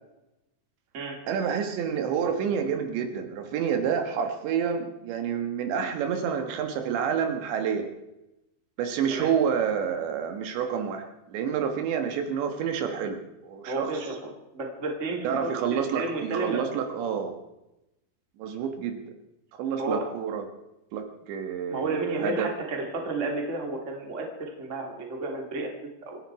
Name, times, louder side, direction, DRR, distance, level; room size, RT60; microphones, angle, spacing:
voice 1, 1.3-7.9 8.8-13.9 15.2-17.4 18.4-19.0 19.6-20.5 20.9-22.5, right 7 dB, 70° right, 6 dB, 3.6 m, -28 dB
voice 2, 13.6-16.6 19.8-20.0 21.7-25.7 26.0-26.2, right 2 dB, 20° right, 2 dB, 2.3 m, -32 dB
27.5 x 11.0 x 4.8 m, 0.92 s
omnidirectional pair, 5.5 m